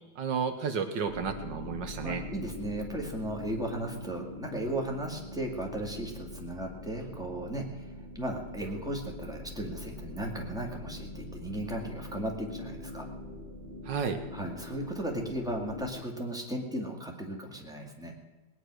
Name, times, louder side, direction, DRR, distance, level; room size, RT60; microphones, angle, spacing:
voice 1, 0.2-2.2 13.9-14.2, right 6 dB, 70° right, 8 dB, 1.7 m, -32 dB
sound 1, 1.0-15.9, left 2 dB, 25° right, 3.9 m, -43 dB
voice 2, 2.0-13.1 14.3-18.1, right 1 dB, ahead, 1 dB, 2.0 m, -36 dB
19.5 x 9.9 x 6.3 m, 1.3 s
omnidirectional pair, 2.1 m